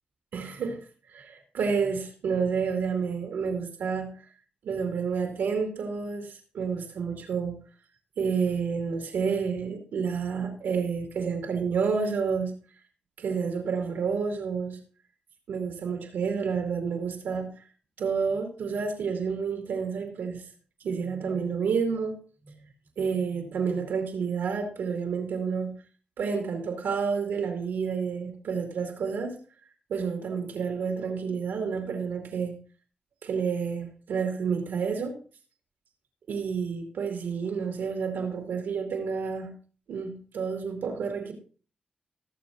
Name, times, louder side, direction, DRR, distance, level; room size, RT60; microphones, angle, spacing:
voice 1, 0.3-0.8 1.1-4.1 4.6-7.5 8.2-12.5 13.2-14.8 15.5-17.6 18.0-20.4 20.8-22.2 22.4-25.7 26.2-29.4 29.9-32.6 33.2-35.2 36.3-39.5 39.9-41.3, right 5 dB, 85° right, 3 dB, 2.3 m, -29 dB
18.5 x 7.3 x 2.6 m, 0.39 s
cardioid pair, 50°, 3 cm